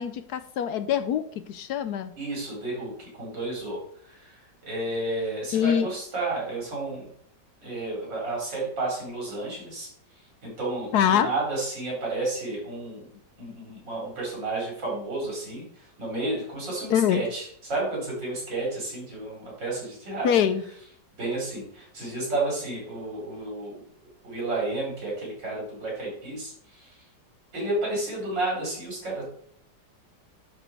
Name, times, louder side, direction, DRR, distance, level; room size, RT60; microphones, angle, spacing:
voice 1, 0.0-2.1 5.5-5.9 10.9-11.3 16.9-17.2 20.2-20.6, left 9 dB, 70° left, 12 dB, 1.1 m, -24 dB
voice 2, 2.2-7.1 7.6-9.9 10.4-13.1 13.4-20.3 21.2-23.8 24.2-27.0 27.5-29.2, right 2 dB, 85° right, -3 dB, 5.1 m, -31 dB
11.0 x 5.0 x 4.6 m, 0.62 s
omnidirectional pair, 1.9 m